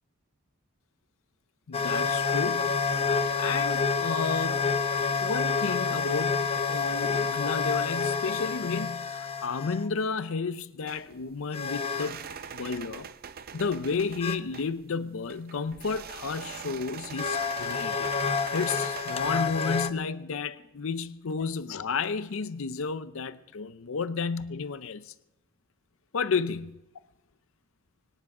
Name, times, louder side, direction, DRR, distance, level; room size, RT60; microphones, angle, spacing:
voice 1, 1.7-2.8 3.4-4.7 5.2-12.2 12.5-13.1 13.5-18.1 18.5-25.1 26.1-26.8, left 5 dB, 70° left, 0.6 m, -32 dB
sound 1, 1.7-9.9 11.5-12.2 14.2-14.4 16.4-16.5 17.2-19.9, left 5 dB, 30° left, 0.7 m, -28 dB
sound 2, 10.9-19.3, right 7 dB, 45° right, 0.6 m, -44 dB
25.5 x 10.0 x 4.8 m
head